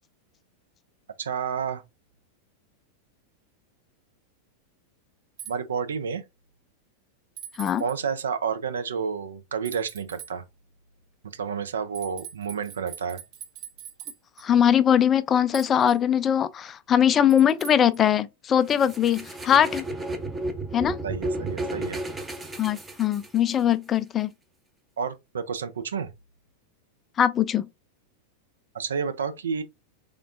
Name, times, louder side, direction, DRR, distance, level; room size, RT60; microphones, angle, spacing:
voice 1, 1.2-1.8 5.5-6.2 7.8-10.4 11.3-13.2 21.0-22.0 25.0-26.1 28.7-29.6, right 6 dB, 65° right, 0.5 m, -30 dB
sound 1, 5.4-5.5 7.4-8.0 9.6-10.3 11.9-14.4 15.5-16.0 17.3-18.0, right 9 dB, 50° right, 1.4 m, -42 dB
voice 2, 14.4-19.8 20.7-21.0 22.6-24.3 27.2-27.7, left 9 dB, 25° left, 0.3 m, -21 dB
sound 2, 18.7-23.6, right 2 dB, 10° right, 0.7 m, -33 dB
3.7 x 3.5 x 2.4 m
figure-of-eight pair, 90°, 0 cm